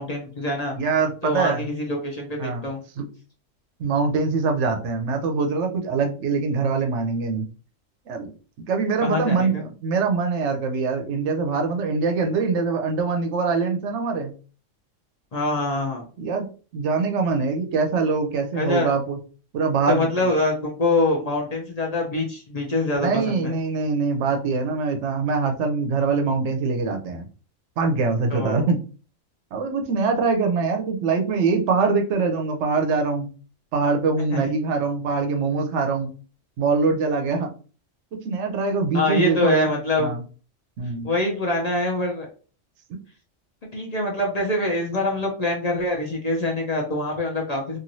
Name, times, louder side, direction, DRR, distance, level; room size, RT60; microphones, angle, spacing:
voice 1, 0.0-0.7 1.2-2.8 9.0-9.6 15.3-16.0 18.5-18.9 19.9-23.5 28.3-28.6 34.3-34.5 38.9-40.2 41.0-42.3 43.7-47.8, left 2 dB, 45° left, -1 dB, 0.5 m, -24 dB
voice 2, 0.7-1.6 2.4-2.7 3.0-3.1 3.8-7.5 8.1-8.3 8.7-14.3 16.2-16.5 16.7-19.2 19.5-20.3 22.9-27.3 27.8-28.8 29.5-33.3 33.7-36.1 36.6-37.5 38.1-40.2 40.8-41.1, right 4 dB, 70° right, 4 dB, 0.9 m, -23 dB
3.0 x 2.5 x 2.6 m, 0.38 s
omnidirectional pair, 1.4 m